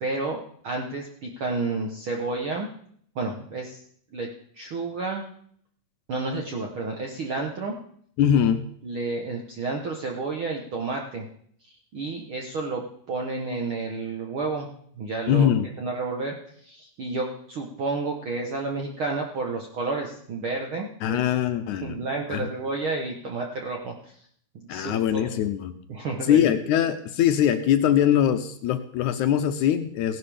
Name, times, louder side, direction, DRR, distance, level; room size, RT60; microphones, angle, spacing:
voice 1, 0.0-2.7 3.1-3.8 4.1-4.3 4.5-5.2 6.1-7.7 8.8-11.2 11.6-14.7 14.9-21.2 21.8-24.3 24.5-25.4 25.9-26.5, right 3 dB, 65° right, 1 dB, 1.3 m, -31 dB
voice 2, 8.2-8.6 15.3-15.7 21.0-22.0 22.3-22.5 24.7-25.8 26.3-30.2, left 10 dB, 80° left, 9 dB, 1.9 m, -22 dB
16.5 x 11.0 x 3.4 m, 0.62 s
omnidirectional pair, 3.8 m